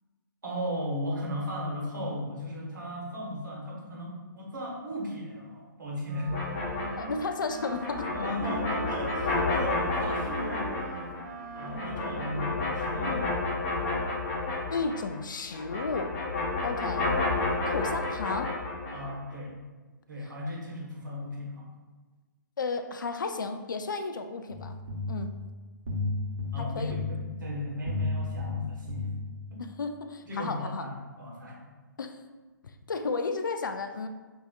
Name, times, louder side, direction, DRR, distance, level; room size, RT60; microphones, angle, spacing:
voice 1, 0.4-6.3 8.1-11.1 11.5-13.3 18.9-19.5 20.1-21.7 26.5-29.1 29.5-29.6 30.2-31.6, equal, 65° right, -3 dB, 1.2 m, -36 dB
Wind instrument woodwind instrument, 6.1-13.6, right 4 dB, 30° right, 0.3 m, -42 dB
sound 1, 6.3-15.2 15.5-19.1, left 3 dB, 30° left, 0.7 m, -31 dB
voice 2, 7.0-8.3 14.7-16.2 16.6-17.1 17.7-18.6 22.6-24.8 25.1-25.3 26.6-27.0 29.6-30.9 32.0-32.2 32.6-34.1, left 4 dB, 65° left, 8 dB, 0.4 m, -33 dB
sound 2, 24.5-29.7, left 3 dB, 45° right, 0.9 m, -34 dB
5.4 x 2.8 x 2.3 m, 1.3 s
figure-of-eight pair, 125°, 11 cm